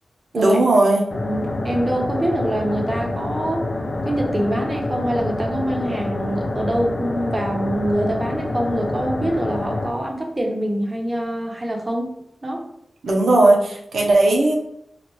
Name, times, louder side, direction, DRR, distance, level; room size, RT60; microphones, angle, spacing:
voice 1, 0.3-1.0 13.0-14.5, right 2 dB, 90° right, 0 dB, 0.7 m, -16 dB
sound 1, 1.1-9.9, left 2 dB, 60° left, 0.5 m, -27 dB
voice 2, 1.2-3.7 4.0-12.1 12.4-12.6, right 1 dB, 30° right, 1 dB, 0.9 m, -24 dB
4.2 x 2.4 x 3.1 m, 0.75 s
wide cardioid pair, 70°, 0 cm